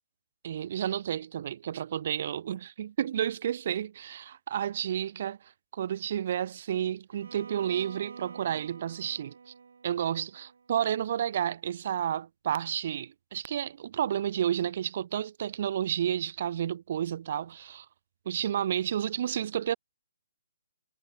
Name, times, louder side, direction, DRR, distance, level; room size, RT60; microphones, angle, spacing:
voice 1, 0.4-9.5 9.8-17.8 18.2-19.7, right 10 dB, 50° right, 1.4 m, -31 dB
Bowed string instrument, 7.1-11.1, right 5 dB, 80° right, 5.4 m, -48 dB
hypercardioid pair, 155°, 0 cm